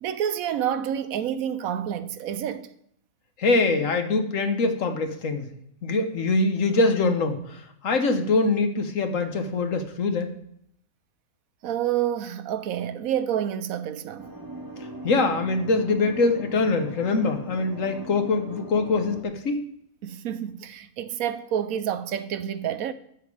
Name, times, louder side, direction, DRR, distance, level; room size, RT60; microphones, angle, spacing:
voice 1, 0.0-2.7 11.6-14.3 20.0-22.9, right 10 dB, 75° right, 1.0 m, -28 dB
voice 2, 3.4-5.5 5.8-10.3 15.0-19.7, left 3 dB, 65° left, 1.4 m, -23 dB
sound 1, 14.2-19.2, right 1 dB, 15° right, 0.8 m, -40 dB
10.5 x 7.4 x 4.8 m
omnidirectional pair, 1.5 m